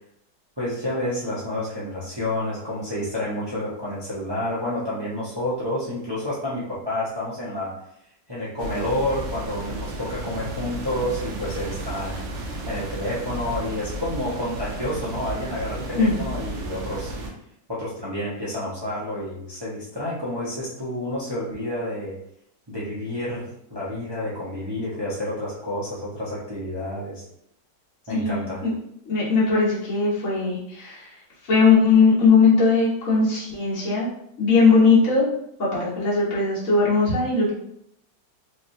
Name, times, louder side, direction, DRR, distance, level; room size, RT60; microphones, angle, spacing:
voice 1, 0.6-7.7 8.3-12.2 12.6-17.1 17.7-22.2 22.7-27.2 28.1-28.6, left 1 dB, 40° right, -8 dB, 0.3 m, -29 dB
sound 1, 8.6-17.3, right 2 dB, 65° right, 0.7 m, -33 dB
voice 2, 28.1-28.7 29.1-31.1 31.4-34.1 34.4-35.3 35.6-37.5, left 4 dB, 50° left, -8 dB, 1.4 m, -19 dB
3.4 x 3.0 x 2.6 m, 0.74 s
omnidirectional pair, 2.0 m